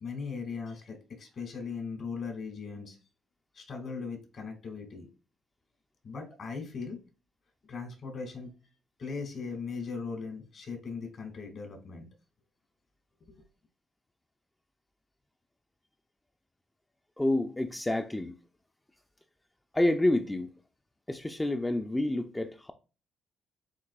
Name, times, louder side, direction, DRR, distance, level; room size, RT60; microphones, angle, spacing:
voice 1, 0.0-3.0 3.5-5.1 6.0-7.0 7.7-8.5 9.0-12.1 13.3-13.4, left 5 dB, 60° left, 1.7 m, -39 dB
voice 2, 17.2-18.4 19.7-20.5 21.1-22.7, left 1 dB, 10° left, 0.3 m, -28 dB
7.3 x 2.6 x 2.3 m
cardioid pair, 90°, 0 cm